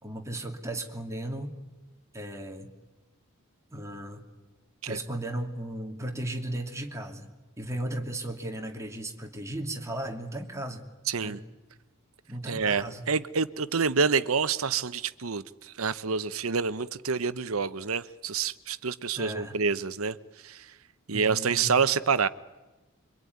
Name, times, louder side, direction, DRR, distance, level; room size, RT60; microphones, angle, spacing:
voice 1, 0.0-1.5 2.1-2.7 3.7-4.2 4.9-7.3 7.6-10.8 11.2-11.4 12.3-13.0 19.2-19.5 21.1-21.7, right 1 dB, 15° right, 3 dB, 2.7 m, -35 dB
voice 2, 11.1-11.4 12.5-20.2 20.4-20.7 21.1-22.3, right 5 dB, 75° right, 15 dB, 1.0 m, -27 dB
26.0 x 24.0 x 9.5 m, 1.1 s
head